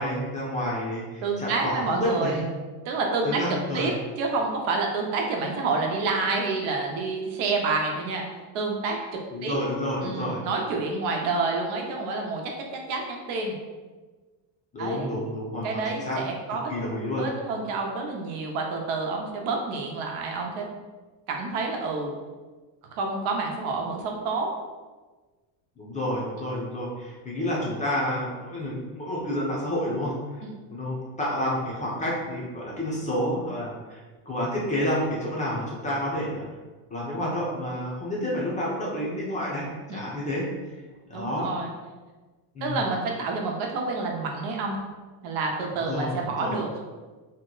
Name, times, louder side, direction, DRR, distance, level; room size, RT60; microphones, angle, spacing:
voice 1, 0.0-2.4 3.2-3.9 9.3-10.4 14.7-16.2 16.7-17.3 25.8-30.4 30.7-36.5 36.9-40.5 41.1-41.5 42.5-42.8 45.9-46.6, left 1 dB, 15° left, -5 dB, 0.4 m, -29 dB
voice 2, 1.2-2.5 2.8-3.4 3.7-3.9 4.2-8.2 8.5-9.0 9.4-9.6 10.0-12.4 12.9-13.6 14.8-15.1 15.6-16.6 17.2-20.7 21.3-22.1 22.9-24.5 39.9-40.0 41.1-41.7 42.6-44.8 45.2-46.8, right 3 dB, 90° right, 1 dB, 0.8 m, -28 dB
2.9 x 2.1 x 3.7 m, 1.3 s
cardioid pair, 155°, 47 cm